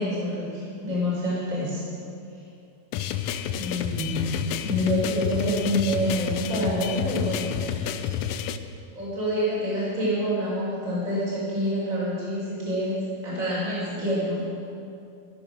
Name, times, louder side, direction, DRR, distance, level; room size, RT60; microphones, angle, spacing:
voice 1, 0.0-1.8 3.5-7.9 9.0-14.4, equal, 25° right, -8 dB, 5.3 m, -27 dB
sound 1, 2.9-8.6, left 9 dB, 80° left, 1.5 m, -30 dB
14.0 x 13.5 x 6.3 m, 2.6 s
omnidirectional pair, 3.4 m